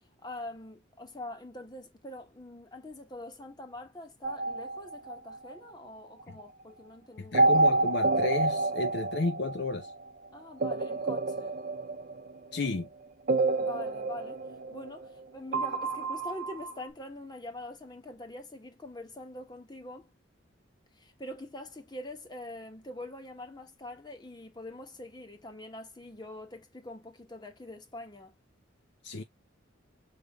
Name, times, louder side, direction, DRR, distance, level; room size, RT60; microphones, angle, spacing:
voice 1, 0.2-7.4 10.3-11.5 13.6-14.4 14.7-20.1 21.0-28.3, left 1 dB, 20° left, 1.2 m, -44 dB
sound 1, 4.2-5.5 7.3-9.9 10.6-12.6 13.3-15.2 15.5-16.9, right 2 dB, 45° right, 0.5 m, -29 dB
voice 2, 7.2-9.9 12.5-12.9 29.0-29.2, left 3 dB, 55° left, 0.5 m, -32 dB
6.2 x 3.4 x 2.3 m
head